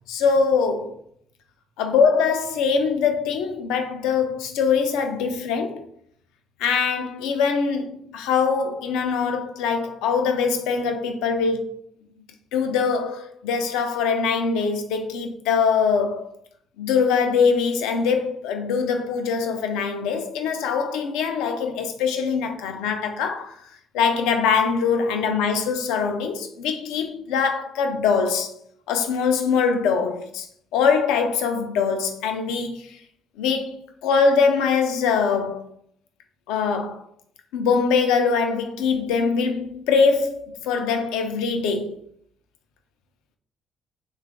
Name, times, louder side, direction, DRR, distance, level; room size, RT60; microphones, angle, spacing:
voice 1, 0.1-1.0 1.8-5.9 6.6-11.8 12.5-16.3 16.8-23.6 23.9-28.5 28.9-30.5 30.7-33.0 33.4-35.6 36.5-37.0 37.5-42.0, left 5 dB, 80° left, 0.4 m, -23 dB
3.2 x 2.3 x 3.5 m
hypercardioid pair, 50°, 0 cm